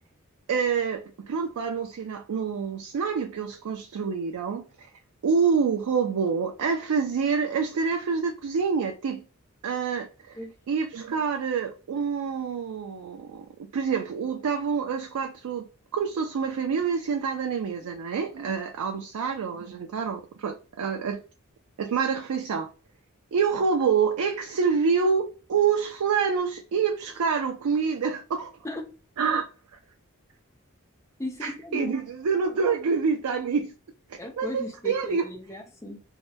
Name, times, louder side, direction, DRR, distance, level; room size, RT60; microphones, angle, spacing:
voice 1, 0.5-4.9 5.2-9.2 9.6-10.4 10.7-15.7 15.9-21.2 21.8-22.7 23.3-28.5 29.2-29.4 31.4-33.7 34.1-35.3, right 5 dB, 90° right, 0.4 m, -27 dB
voice 2, 28.6-29.0 31.2-31.9 34.2-36.0, left 1 dB, 15° left, 0.4 m, -37 dB
2.8 x 2.0 x 2.2 m
head